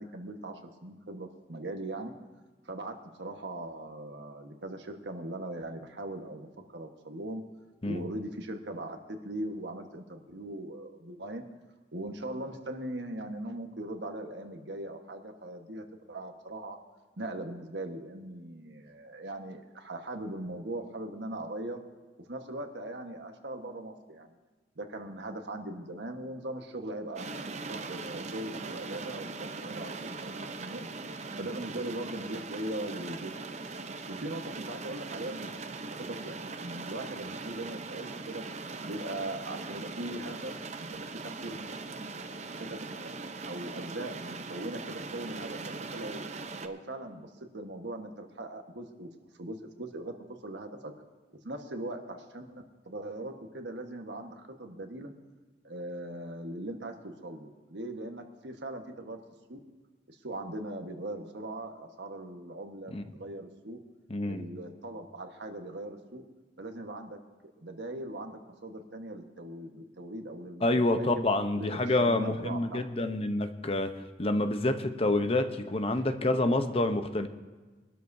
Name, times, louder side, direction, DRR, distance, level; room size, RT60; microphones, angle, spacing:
voice 1, 0.0-2.1 2.6-6.5 6.7-7.4 7.8-11.5 11.9-16.8 17.2-21.8 22.3-24.3 24.8-27.3 27.6-30.9 31.4-33.3 34.1-35.5 35.8-38.4 38.8-40.9 41.2-41.8 42.6-43.1 43.4-46.3 46.6-49.1 49.4-50.1 50.4-50.9 51.4-55.1 55.6-59.2 59.5-59.6 60.1-63.8 64.2-66.2 66.6-67.2 67.6-71.3 71.6-71.7 72.0-72.8 76.0-76.1, right 1 dB, 85° right, 4 dB, 1.3 m, -40 dB
sound 1, 27.2-46.7, right 3 dB, 40° right, 0.7 m, -40 dB
voice 2, 64.1-64.4 70.6-73.9 74.2-77.3, left 2 dB, 35° left, 8 dB, 0.8 m, -27 dB
23.5 x 12.5 x 2.7 m, 1.3 s
head